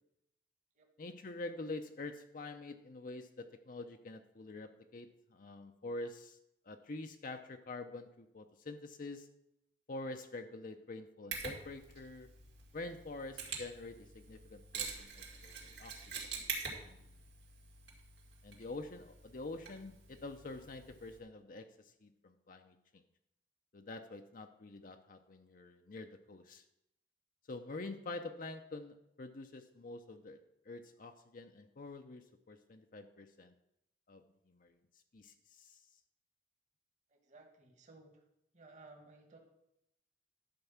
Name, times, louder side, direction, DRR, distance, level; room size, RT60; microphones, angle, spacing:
voice 1, 1.0-6.4 6.7-9.3 9.9-12.3 12.7-15.9 16.8-17.1 18.4-21.7 22.0-22.8 23.7-26.6 27.5-30.4 30.7-33.5 34.1-34.7 35.1-35.8, left 2 dB, 50° left, 6 dB, 0.7 m, -46 dB
Mechanisms, 11.3-21.2, right 5 dB, 70° right, 2.5 m, -46 dB
voice 2, 37.1-38.2 38.5-39.4, right 3 dB, 45° right, 2 dB, 1.7 m, -58 dB
11.5 x 4.6 x 7.2 m, 0.82 s
head